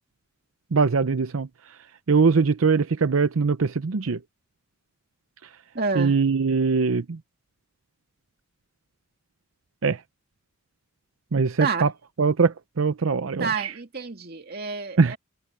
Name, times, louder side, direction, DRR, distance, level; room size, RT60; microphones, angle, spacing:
voice 1, 0.7-1.5 2.1-4.2 6.0-7.2 9.8-10.0 11.3-11.9 12.2-13.7 15.0-15.1, right 4 dB, 85° right, 0.6 m, -22 dB
voice 2, 5.7-6.2 11.6-11.9 13.4-15.2, right 4 dB, 50° right, 2.3 m, -28 dB
head